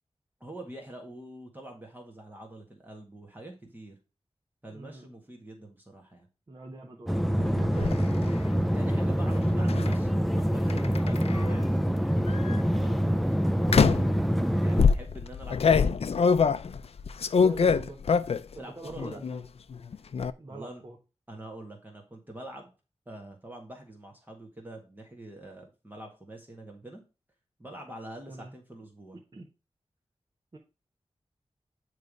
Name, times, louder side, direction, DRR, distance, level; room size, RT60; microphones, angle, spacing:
voice 1, 0.4-3.9 4.6-6.3 8.7-13.0 14.6-15.9 18.6-19.2 20.5-20.8 21.3-22.7 23.0-27.0 27.6-29.2, right 1 dB, 15° right, 1 dB, 1.6 m, -45 dB
voice 2, 4.7-5.1 6.5-8.1 12.7-12.9 17.4-18.0 18.5-19.4 20.4-21.0 28.3-28.5 29.3-29.5 30.5-30.6, right 2 dB, 40° right, -2 dB, 1.2 m, -43 dB
sound 1, 7.1-14.8, equal, ahead, 0.4 m, -25 dB
sound 2, 7.4-8.0 9.7-9.9 10.7-11.5 12.3-12.6 13.7-14.2 14.8-18.5 18.9-19.4 19.7-20.3, left 5 dB, 70° left, 0.4 m, -24 dB
9.3 x 3.3 x 5.2 m, 0.30 s
wide cardioid pair, 100°, 11 cm